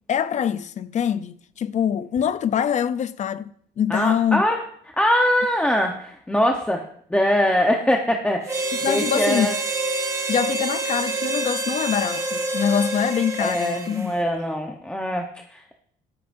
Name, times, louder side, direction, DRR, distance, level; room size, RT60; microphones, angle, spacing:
voice 1, 0.1-3.5 3.8-4.4 8.8-9.5 10.3-14.1, left 8 dB, 45° left, 0.5 m, -24 dB
voice 2, 3.9-4.6 5.0-6.8 7.1-9.5 13.4-15.7, equal, 5° left, 0.9 m, -22 dB
Harmonica, 8.5-14.1, right 2 dB, 20° right, 1.6 m, -27 dB
15.0 x 12.5 x 2.6 m
cardioid pair, 110°, 17 cm